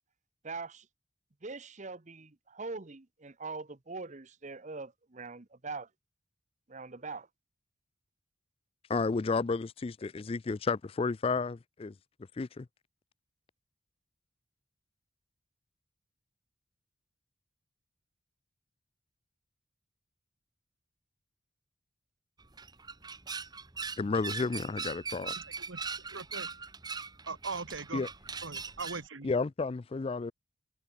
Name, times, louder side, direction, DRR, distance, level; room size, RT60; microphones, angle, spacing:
voice 1, 0.4-0.8 1.4-5.9 6.7-7.3, right 3 dB, 35° right, 0.9 m, -42 dB
voice 2, 8.9-11.9 12.4-12.7 24.0-25.3 27.9-28.1 29.2-30.3, left 4 dB, 30° left, 0.4 m, -32 dB
sound 1, 22.4-29.1, right 5 dB, 20° right, 1.6 m, -40 dB
voice 3, 25.4-25.8 26.1-26.5 27.3-28.0 28.4-29.3, right 4 dB, 70° right, 1.6 m, -40 dB
head